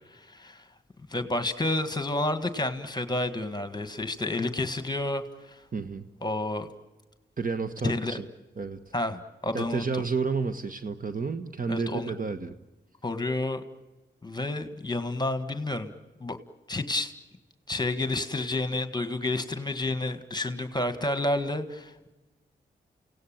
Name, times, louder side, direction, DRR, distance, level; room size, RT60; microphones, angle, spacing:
voice 1, 0.3-0.6 1.1-5.2 6.2-6.7 7.8-8.2 8.9-10.0 11.7-12.1 13.0-13.6 14.2-15.9 16.2-16.4 16.7-17.1 17.7-22.1, left 2 dB, 20° left, 9 dB, 1.7 m, -30 dB
voice 2, 5.7-6.0 7.4-8.2 8.6-8.8 9.5-12.5, right 4 dB, 45° right, 9 dB, 1.3 m, -31 dB
29.5 x 17.5 x 8.9 m, 1.1 s
cardioid pair, 60°, 19 cm